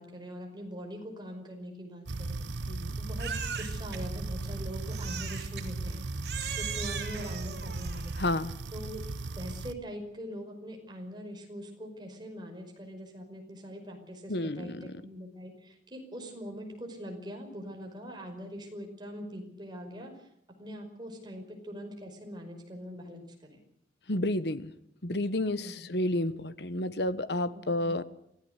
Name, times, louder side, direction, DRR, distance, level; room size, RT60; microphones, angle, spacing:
voice 1, 0.0-2.5 2.9-6.1 6.5-8.2 8.7-9.0 9.4-20.3 20.6-23.2 23.5-23.6 25.6-26.0 27.5-28.0, equal, 25° right, 5.4 m, -43 dB
sound 1, 2.1-9.7, right 2 dB, 85° right, 1.0 m, -37 dB
Crying sobbing, 3.2-4.0 4.9-5.7 6.2-8.3, right 7 dB, 60° right, 3.7 m, -39 dB
voice 2, 8.2-8.5 14.3-14.8 24.1-24.7 25.0-28.0, left 1 dB, 65° left, 1.2 m, -30 dB
24.5 x 17.0 x 8.2 m
head